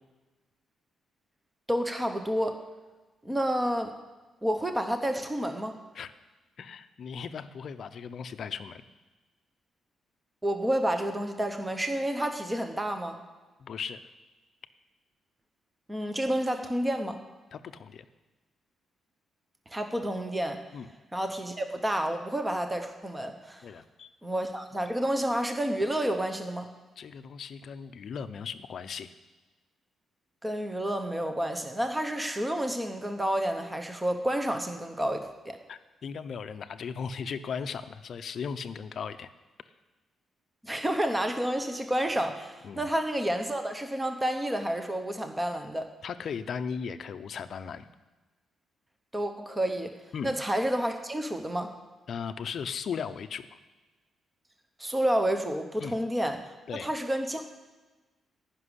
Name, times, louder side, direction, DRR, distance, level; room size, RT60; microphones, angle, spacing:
voice 1, 1.7-2.6 3.2-3.9 4.4-5.8 10.4-13.2 15.9-17.2 19.7-20.6 21.1-23.7 24.2-26.7 30.4-35.6 40.6-45.8 49.1-49.9 50.2-51.7 54.8-57.4, right 1 dB, 10° right, 6 dB, 0.8 m, -30 dB
voice 2, 6.6-8.8 13.6-14.0 17.5-18.0 20.7-20.9 23.6-24.1 27.0-29.1 35.7-39.3 42.6-42.9 46.0-47.9 50.1-50.3 52.1-53.6 55.8-56.0 56.7-56.9, left 6 dB, 45° left, 11 dB, 0.6 m, -37 dB
15.5 x 6.1 x 9.8 m, 1.2 s
cardioid pair, 180°, 0 cm